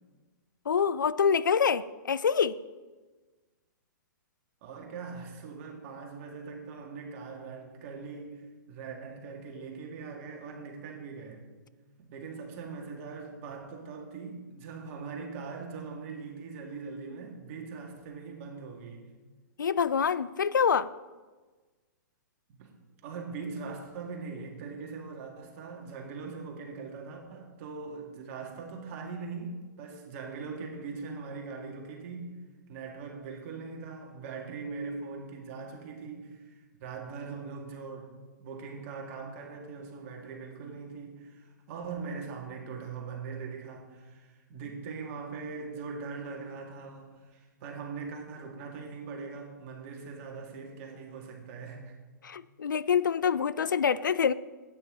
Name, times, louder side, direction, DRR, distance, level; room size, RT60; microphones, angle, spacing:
voice 1, 0.7-2.6 19.6-20.9 52.2-54.3, left 7 dB, 75° left, 17 dB, 0.5 m, -26 dB
voice 2, 4.6-11.4 12.0-19.1 22.5-32.4 32.7-36.5 36.8-38.1 38.4-52.0, right 4 dB, 45° right, 1 dB, 2.2 m, -41 dB
12.0 x 9.1 x 4.0 m, 1.3 s
figure-of-eight pair, 120°, 10 cm